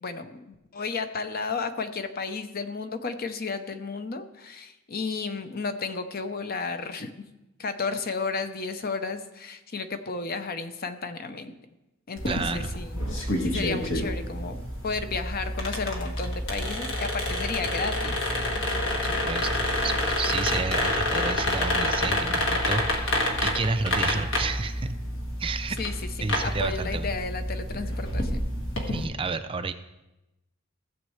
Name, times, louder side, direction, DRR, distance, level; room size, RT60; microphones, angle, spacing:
voice 1, 0.0-7.2 7.6-11.6 12.1-18.2 25.8-28.4, left 4 dB, 45° left, 9 dB, 0.7 m, -33 dB
sound 1, 12.2-29.0, left 1 dB, 60° left, 1.7 m, -28 dB
voice 2, 12.3-12.7 19.0-25.0 25.4-25.8 26.2-27.1 28.9-29.7, right 4 dB, 25° right, 9 dB, 0.4 m, -31 dB
15.5 x 7.4 x 3.2 m, 0.97 s
head